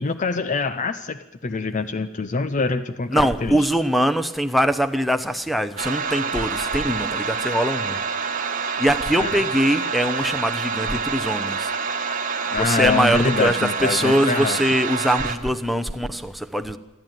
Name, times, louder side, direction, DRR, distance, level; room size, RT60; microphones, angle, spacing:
voice 1, 0.0-3.7 9.2-9.4 12.5-14.6, left 4 dB, 35° left, 0.6 m, -25 dB
voice 2, 3.1-8.0 8.8-11.7 12.6-16.8, equal, ahead, 0.8 m, -22 dB
sound 1, 5.8-15.4, right 5 dB, 40° right, 1.4 m, -27 dB
28.0 x 11.0 x 9.1 m
head